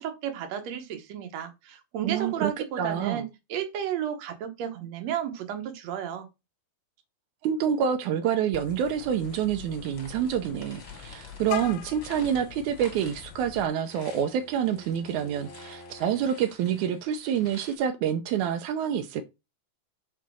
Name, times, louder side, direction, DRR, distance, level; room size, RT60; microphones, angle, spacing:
voice 1, 0.0-6.3, right 9 dB, 60° right, 1.9 m, -33 dB
voice 2, 2.0-2.5 2.8-3.2 7.4-19.2, right 8 dB, 80° right, 1.7 m, -27 dB
Vehicle horn car horn honking, 8.5-13.7, left 11 dB, 80° left, 2.3 m, -42 dB
sound 1, 9.0-17.8, left 2 dB, 30° left, 1.2 m, -51 dB
Bowed string instrument, 12.8-16.4, equal, 55° left, 1.4 m, -51 dB
5.7 x 4.7 x 6.1 m
omnidirectional pair, 4.2 m